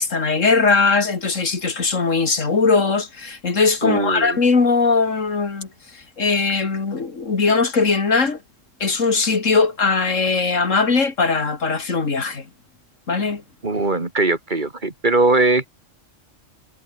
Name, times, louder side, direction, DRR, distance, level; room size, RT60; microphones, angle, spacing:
voice 1, 0.0-8.4 8.8-12.5 13.1-13.4, left 4 dB, 75° left, 2.9 m, -20 dB
voice 2, 3.8-4.4 13.6-15.7, right 3 dB, 40° right, 2.7 m, -20 dB
omnidirectional pair, 1.3 m